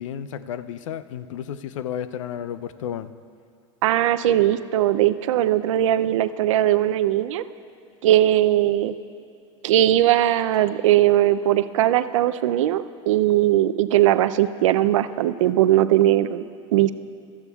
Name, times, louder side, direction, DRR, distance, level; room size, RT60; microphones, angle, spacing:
voice 1, 0.0-3.1, left 9 dB, 85° left, 14 dB, 0.5 m, -32 dB
voice 2, 3.8-7.4 8.0-8.9 9.6-16.5 16.7-16.9, right 13 dB, 85° right, 13 dB, 0.4 m, -19 dB
15.0 x 13.5 x 2.3 m, 2.4 s
supercardioid pair, 110°, 16 cm